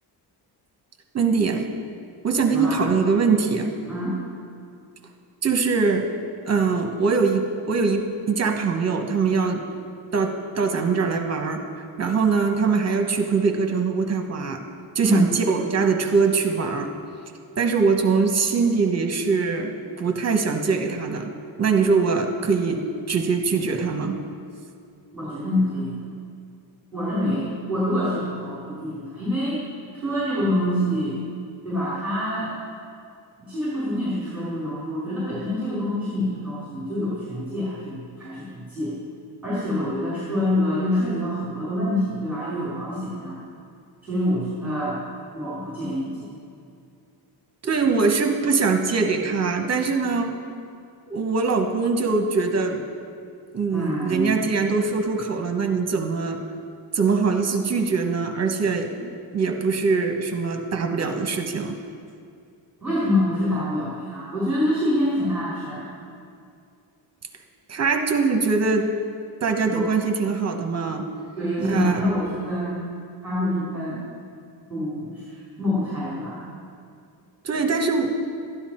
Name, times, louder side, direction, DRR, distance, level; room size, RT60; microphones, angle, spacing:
voice 1, 1.1-1.7 2.2-3.7 5.4-6.1 6.5-9.6 10.1-11.6 12.0-14.6 14.9-16.9 17.6-21.3 21.6-22.8 23.1-24.2 47.6-50.4 51.1-52.8 53.5-56.4 56.9-61.8 67.7-68.9 69.4-71.1 71.6-72.0 77.4-78.1, right 4 dB, 35° right, 5 dB, 0.9 m, -22 dB
voice 2, 2.5-2.8 3.8-4.2 15.0-15.3 25.1-25.9 26.9-29.6 29.9-31.2 31.6-32.5 33.4-39.0 39.4-43.4 44.0-45.0 45.3-46.3 53.7-54.4 62.8-66.0 69.7-69.9 71.4-72.9 73.2-74.0 74.7-76.4, left 1 dB, 5° right, -10 dB, 3.1 m, -26 dB
13.0 x 10.0 x 4.3 m, 2.4 s
wide cardioid pair, 160°, 45 cm